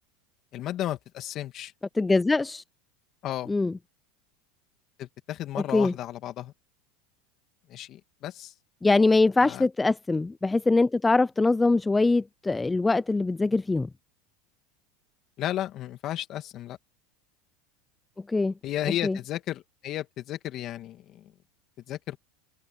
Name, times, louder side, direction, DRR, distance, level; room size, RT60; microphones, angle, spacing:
voice 1, 0.5-1.7 3.2-3.5 5.0-6.5 7.7-8.5 9.4-9.6 15.4-16.8 18.6-21.3 21.9-22.2, left 13 dB, 40° left, 2.3 m, -33 dB
voice 2, 1.9-2.6 3.5-3.8 5.7-5.9 8.8-13.9 18.3-18.5 19.0-19.2, left 3 dB, 10° left, 0.3 m, -23 dB
supercardioid pair, 130°, 0 cm